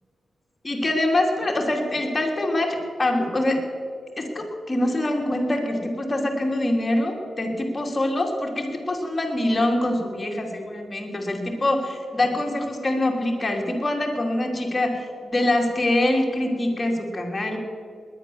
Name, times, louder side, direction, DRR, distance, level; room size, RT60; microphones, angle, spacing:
voice 1, 0.6-3.6 4.2-17.6, left 1 dB, 25° left, 1 dB, 2.7 m, -24 dB
20.5 x 10.0 x 7.0 m, 2.4 s
cardioid pair, 85°, 0 cm